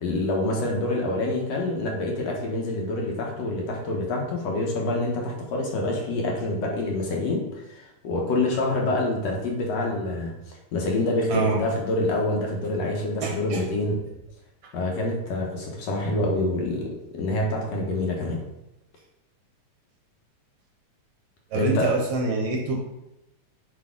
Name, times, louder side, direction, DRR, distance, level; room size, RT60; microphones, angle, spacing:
voice 1, 0.0-7.4 7.7-10.3 10.7-14.0 14.7-18.4 21.6-21.9, left 2 dB, 65° left, -1 dB, 2.2 m, -26 dB
voice 2, 11.3-11.6 13.2-13.6 21.5-22.8, right 3 dB, 65° right, 1 dB, 1.7 m, -25 dB
6.2 x 5.4 x 3.7 m, 0.89 s
omnidirectional pair, 3.3 m